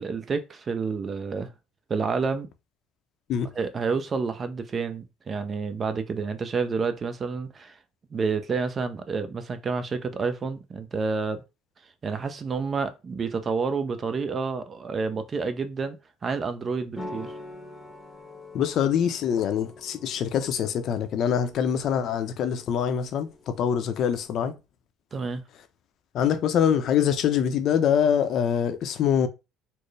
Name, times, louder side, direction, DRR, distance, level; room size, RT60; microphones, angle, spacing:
voice 1, 0.0-1.5 1.9-2.5 3.5-7.8 8.1-11.4 12.0-16.0 16.2-17.3 25.1-25.4, right 4 dB, 30° right, 0.5 m, -29 dB
sound 1, 17.0-24.3, left 1 dB, 5° left, 0.9 m, -45 dB
voice 2, 18.5-24.5 26.1-29.3, left 8 dB, 55° left, 0.6 m, -24 dB
4.3 x 2.0 x 3.2 m
cardioid pair, 110°, 0 cm